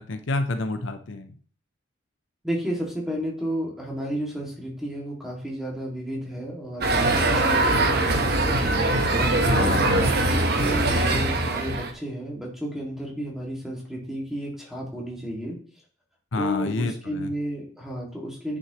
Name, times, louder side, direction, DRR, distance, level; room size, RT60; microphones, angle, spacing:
voice 1, 0.0-1.3 9.5-10.1 16.3-17.3, left 2 dB, 70° left, 8 dB, 0.7 m, -28 dB
voice 2, 2.4-8.6 9.1-15.6 16.3-18.6, equal, ahead, -2 dB, 2.1 m, -32 dB
sound 1, 6.8-11.9, right 2 dB, 50° right, 1.1 m, -22 dB
9.6 x 6.2 x 3.0 m, 0.44 s
head